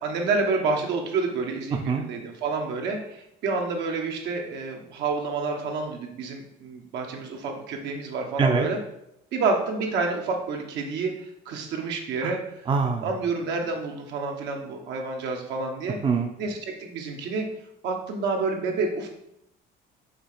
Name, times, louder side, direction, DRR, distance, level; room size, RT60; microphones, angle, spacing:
voice 1, 0.0-8.8 9.3-11.1 11.4-12.4 13.0-16.0 16.4-17.5 17.8-19.1, right 4 dB, 75° right, 2 dB, 1.3 m, -28 dB
voice 2, 12.7-13.1 16.0-16.3, right 5 dB, 30° right, 4 dB, 0.6 m, -23 dB
5.6 x 3.3 x 5.7 m, 0.81 s
cardioid pair, 120°, 18 cm